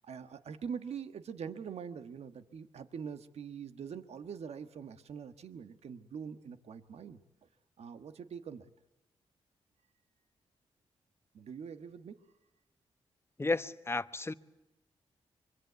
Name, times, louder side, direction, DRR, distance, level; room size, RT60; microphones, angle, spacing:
voice 1, 0.0-7.2 7.8-8.7 11.3-12.2, right 7 dB, 75° right, 1.4 m, -43 dB
voice 2, 13.4-14.3, left 3 dB, 20° left, 1.0 m, -33 dB
25.0 x 23.5 x 8.1 m
cardioid pair, 60°, 11 cm